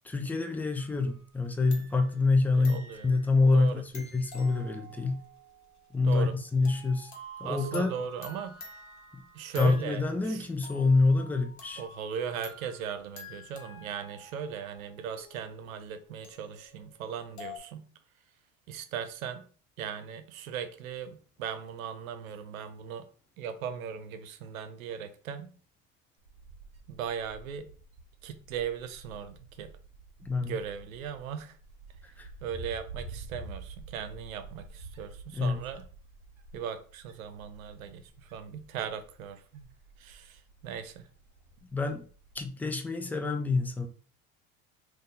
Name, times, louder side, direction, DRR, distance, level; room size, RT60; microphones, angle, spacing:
voice 1, 0.0-5.2 5.9-7.1 7.4-7.9 9.1-9.2 9.6-11.8 30.2-30.5 32.2-32.3 35.3-35.6 41.7-42.1 42.3-43.9, left 3 dB, 5° left, 4 dB, 0.3 m, -26 dB
sound 1, 0.8-1.4 1.7-10.2 10.6-17.6, left 1 dB, 45° left, 1.2 m, -49 dB
voice 2, 2.5-3.2 3.5-3.8 6.0-6.4 7.4-8.7 9.3-10.5 11.8-17.9 18.7-19.5 19.8-23.1 23.4-25.6 26.9-27.7 28.2-29.7 30.4-31.6 32.4-35.9 36.5-39.7 40.0-41.1, right 7 dB, 85° right, 9 dB, 0.6 m, -38 dB
Wind, 26.2-42.5, right 3 dB, 55° right, 0.9 m, -49 dB
2.6 x 2.4 x 3.6 m, 0.41 s
hypercardioid pair, 85°, 40 cm